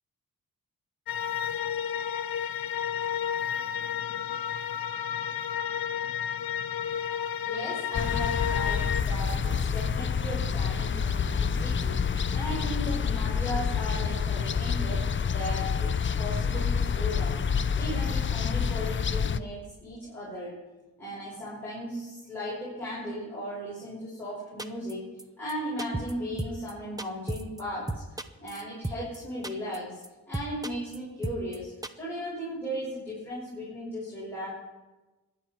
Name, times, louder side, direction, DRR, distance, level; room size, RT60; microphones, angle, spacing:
sound 1, 1.1-9.0, left 9 dB, 80° left, 0.8 m, -31 dB
voice 1, 7.4-17.4 17.7-20.6 21.0-25.1 25.4-30.0 30.3-34.5, equal, 5° left, -9 dB, 6.0 m, -37 dB
sound 2, 7.9-19.4, left 6 dB, 35° left, 0.5 m, -28 dB
sound 3, 24.6-24.9 25.2-25.3 25.5-25.6 25.8-26.1 26.4-26.7 27.0-27.6 27.9-29.2 29.4-29.8 30.0-30.1 30.3-31.0 31.2-31.6 31.8-31.9, right 2 dB, 10° right, 0.7 m, -33 dB
25.0 x 10.5 x 4.5 m, 1.2 s
wide cardioid pair, 150°, 35 cm